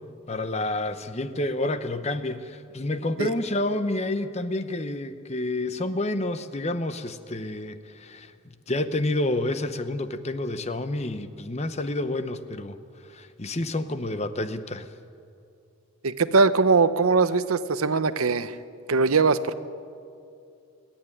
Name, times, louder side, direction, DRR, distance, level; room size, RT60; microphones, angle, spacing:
voice 1, 0.3-8.3 8.7-12.8 13.1-14.9, left 1 dB, 30° left, 11 dB, 0.8 m, -29 dB
voice 2, 16.0-18.5 18.9-19.6, right 4 dB, 85° right, 13 dB, 0.8 m, -21 dB
28.5 x 10.0 x 9.9 m, 2.5 s
head